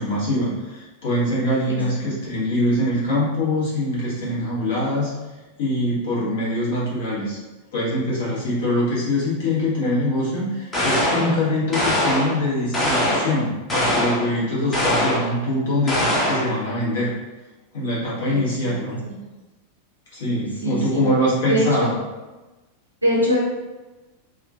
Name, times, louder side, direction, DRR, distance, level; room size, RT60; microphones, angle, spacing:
voice 1, 0.0-5.1 5.6-7.4 7.7-17.1 17.7-19.0 20.1-22.0, left 1 dB, 60° left, -7 dB, 1.2 m, -23 dB
voice 2, 1.7-2.0 18.3-19.1 20.6-21.0 21.4-21.9 23.0-23.4, equal, 85° right, -4 dB, 0.8 m, -23 dB
sound 1, 10.7-11.3 11.7-12.4 12.7-13.4 13.7-14.3 14.7-15.3 15.9-16.5, left 1 dB, 15° left, 0.8 m, -22 dB
2.8 x 2.4 x 2.6 m, 1.1 s
figure-of-eight pair, 90°, 0 cm